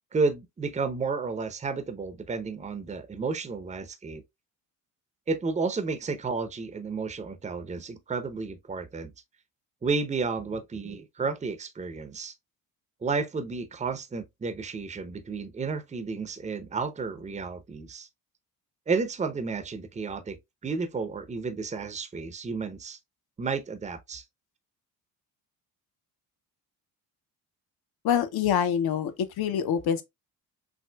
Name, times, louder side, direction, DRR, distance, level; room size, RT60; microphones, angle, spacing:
voice 1, 0.1-4.2 5.3-9.1 9.8-12.3 13.0-18.1 18.9-20.4 20.6-23.0 23.4-24.2, right 4 dB, 15° right, 0.7 m, -32 dB
voice 2, 28.0-29.1 29.4-30.0, left 8 dB, 50° left, 0.8 m, -25 dB
6.2 x 2.5 x 2.2 m
hypercardioid pair, 50°, 49 cm